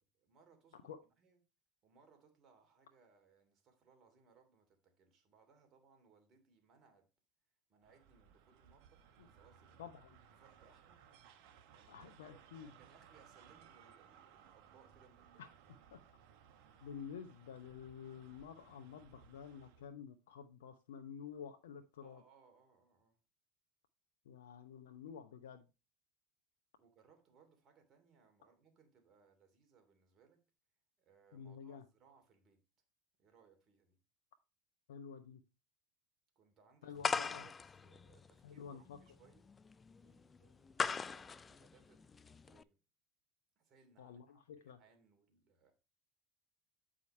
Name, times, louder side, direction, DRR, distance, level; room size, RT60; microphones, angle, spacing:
voice 1, 0.2-1.4 1.8-7.1 7.7-9.9 10.4-11.1 11.7-15.4 22.0-23.2 26.8-30.4 31.0-32.6 33.2-34.0 36.3-37.1 37.3-39.5 40.0-42.8 43.6-45.8, right 5 dB, 50° right, 2.7 m, -68 dB
sound 1, 7.8-19.9, right 8 dB, 70° right, 1.1 m, -63 dB
voice 2, 9.8-10.2 11.9-12.7 15.4-15.5 15.9-16.0 16.8-22.2 24.3-25.6 31.3-31.8 34.9-35.4 36.8-37.5 38.4-39.0 44.0-44.8, left 7 dB, 85° left, 0.6 m, -50 dB
sound 2, 37.0-42.6, left 5 dB, 25° left, 0.4 m, -40 dB
8.3 x 5.0 x 4.3 m
hypercardioid pair, 80°, 0 cm